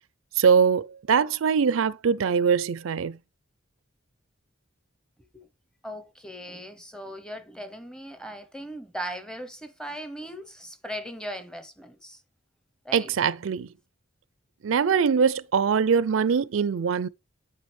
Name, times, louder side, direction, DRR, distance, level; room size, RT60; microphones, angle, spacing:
voice 1, 0.4-3.2 12.9-13.7 14.6-17.1, right 6 dB, 80° right, 0.4 m, -22 dB
voice 2, 5.8-12.2 12.8-13.1, equal, 5° left, 0.7 m, -38 dB
8.9 x 4.9 x 3.3 m
head